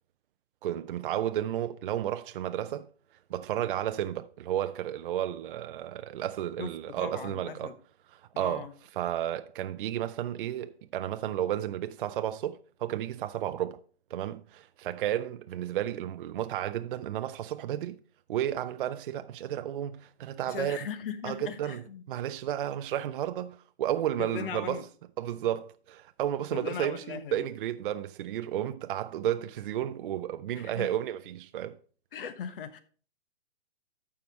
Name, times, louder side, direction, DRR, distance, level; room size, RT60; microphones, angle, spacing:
voice 1, 0.6-2.9 3.3-7.7 8.1-8.7 9.0-13.8 14.1-18.0 18.3-20.8 21.2-24.9 25.2-31.8, right 11 dB, 50° right, 0.5 m, -32 dB
voice 2, 6.6-7.8 8.3-8.7 20.5-22.0 24.2-24.8 26.5-27.4 30.5-30.9 32.1-32.8, left 8 dB, 50° left, 1.2 m, -39 dB
14.0 x 5.0 x 4.1 m
hypercardioid pair, 145°, 34 cm